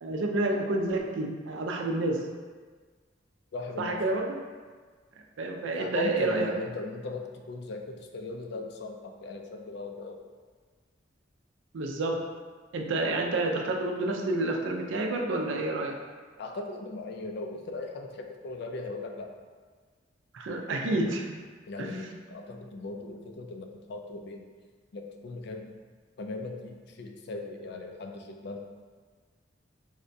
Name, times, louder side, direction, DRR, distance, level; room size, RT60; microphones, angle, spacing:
voice 1, 0.0-2.2 3.8-4.4 5.4-6.5 11.7-12.2 12.7-16.0 20.3-21.4 21.8-21.9, right 2 dB, 80° right, 2 dB, 0.4 m, -29 dB
voice 2, 3.5-4.0 5.7-10.2 16.4-19.3 21.7-24.5 24.9-25.7 26.2-28.6, left 3 dB, 60° left, 3 dB, 0.4 m, -38 dB
4.8 x 2.2 x 2.6 m, 1.5 s
head